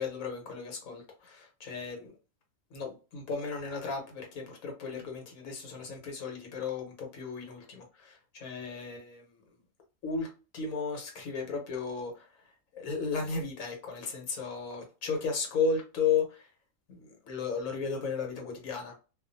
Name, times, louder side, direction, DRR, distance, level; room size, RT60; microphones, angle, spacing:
voice 1, 0.0-2.1 2.7-9.2 10.0-10.3 10.5-12.3 12.7-16.4 16.9-18.9, left 5 dB, 70° left, 1 dB, 1.3 m, -34 dB
2.5 x 2.4 x 2.5 m, 0.32 s
omnidirectional pair, 1.5 m